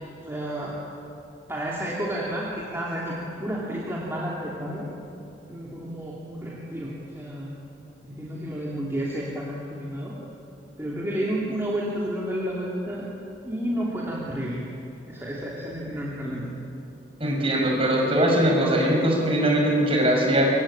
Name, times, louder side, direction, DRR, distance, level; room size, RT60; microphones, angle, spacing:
voice 1, 0.2-0.8 1.5-4.9 5.5-7.5 8.0-10.2 10.8-13.1 13.4-14.6 15.1-16.5, equal, 15° right, -5 dB, 3.1 m, -31 dB
voice 2, 17.2-20.5, right 1 dB, 30° right, -1 dB, 6.0 m, -21 dB
27.5 x 24.0 x 8.8 m, 2.8 s
head